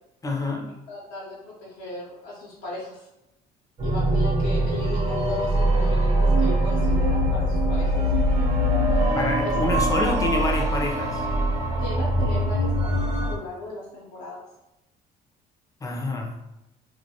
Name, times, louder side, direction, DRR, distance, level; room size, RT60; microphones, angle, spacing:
voice 1, 0.2-0.7 9.1-11.3 15.8-16.4, left 2 dB, 20° left, 2 dB, 0.4 m, -27 dB
voice 2, 0.9-3.1 3.8-8.0 9.4-9.5 9.9-10.1 11.7-14.4, left 2 dB, 85° left, -5 dB, 0.6 m, -37 dB
sound 1, 3.8-13.3, right 1 dB, 40° right, 0.5 m, -22 dB
2.2 x 2.1 x 2.7 m, 0.91 s
cardioid pair, 110°, 17 cm